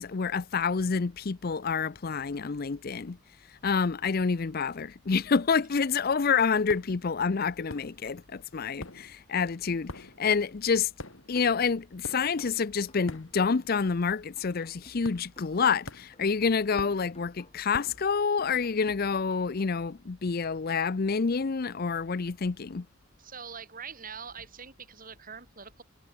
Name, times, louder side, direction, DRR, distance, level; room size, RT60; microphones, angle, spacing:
voice 1, 0.0-3.2 3.6-10.9 11.3-22.9, left 5 dB, 50° left, 0.5 m, -28 dB
sound 1, 6.7-7.1 7.7-8.3 8.6-13.7 14.0-14.3 15.0-15.6 15.9-18.1, left 2 dB, 75° left, 3.0 m, -44 dB
sound 2, 11.3-19.3, left 1 dB, 30° left, 2.8 m, -57 dB
voice 2, 23.2-25.8, right 6 dB, 45° right, 6.6 m, -43 dB
head